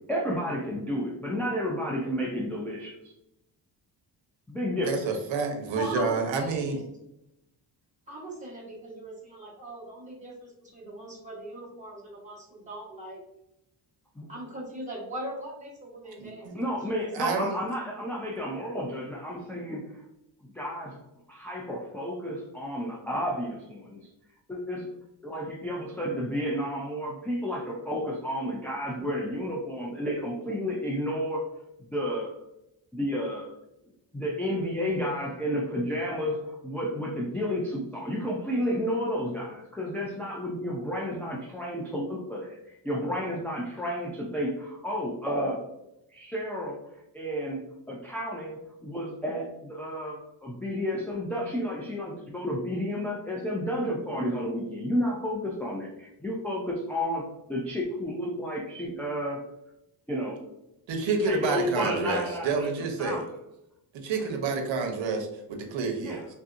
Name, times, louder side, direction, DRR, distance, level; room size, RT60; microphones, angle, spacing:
voice 1, 0.0-3.0 4.5-5.0 14.2-14.3 16.5-20.0 20.4-21.0 21.3-24.0 24.5-24.9 25.2-31.5 31.8-32.3 32.9-33.6 34.1-45.6 46.1-46.8 47.1-47.6 47.9-59.5 60.1-60.4 61.2-63.3 64.2-64.3 66.0-66.3, equal, 5° left, -4 dB, 0.3 m, -31 dB
voice 2, 4.8-6.8 16.2-16.5 17.1-17.6 60.9-63.3 63.9-66.3, right 4 dB, 75° right, 3 dB, 0.8 m, -29 dB
voice 3, 5.4-6.8 8.1-13.2 14.3-16.5 17.0-17.4, right 1 dB, 15° right, -5 dB, 1.1 m, -40 dB
3.5 x 2.7 x 2.5 m, 0.84 s
cardioid pair, 125°, 46 cm